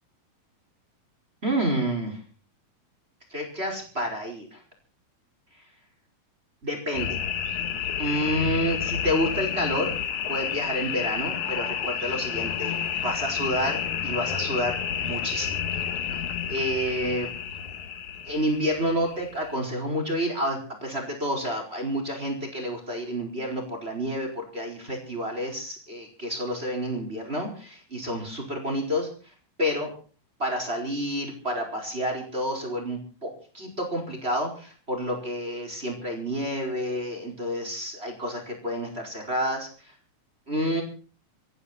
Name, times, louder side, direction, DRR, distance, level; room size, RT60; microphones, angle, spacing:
voice 1, 1.4-2.2 3.3-4.6 6.6-7.2 8.0-9.9 10.3-12.8 13.0-15.6 16.5-17.3 18.2-29.1 29.6-29.9 30.4-39.7 40.5-40.8, equal, 15° right, 2 dB, 4.7 m, -29 dB
sound 1, 6.9-19.6, left 8 dB, 60° left, 2.9 m, -30 dB
27.5 x 11.0 x 4.3 m, 0.39 s
omnidirectional pair, 4.1 m